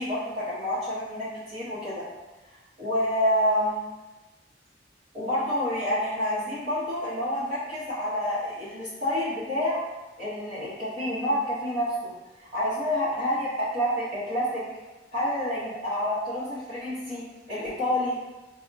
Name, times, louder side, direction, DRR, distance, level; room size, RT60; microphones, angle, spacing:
voice 1, 0.0-2.1 2.8-3.8 5.1-9.8 10.2-12.1 12.4-14.6 15.1-17.2 17.5-18.2, equal, 35° right, -13 dB, 0.8 m, -28 dB
4.7 x 2.0 x 2.5 m, 1.1 s
head